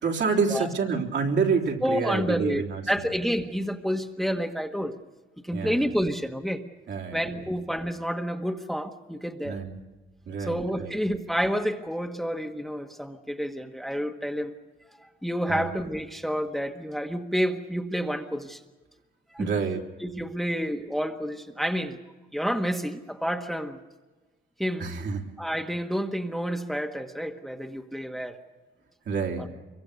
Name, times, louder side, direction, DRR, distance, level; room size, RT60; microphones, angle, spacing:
voice 1, 0.0-2.8 5.5-5.9 6.9-7.2 9.4-9.8 10.3-10.9 15.5-15.7 19.4-19.9 24.8-25.2 29.1-29.5, right 5 dB, 60° right, 0 dB, 3.5 m, -27 dB
voice 2, 1.8-5.0 5.4-6.6 7.1-9.6 10.4-14.5 15.2-18.6 19.3-19.5 20.0-22.0 22.3-23.8 24.6-25.0 25.4-28.4 29.4-29.5, equal, ahead, 4 dB, 1.5 m, -29 dB
24.5 x 23.0 x 6.6 m, 1.2 s
cardioid pair, 90°, 20 cm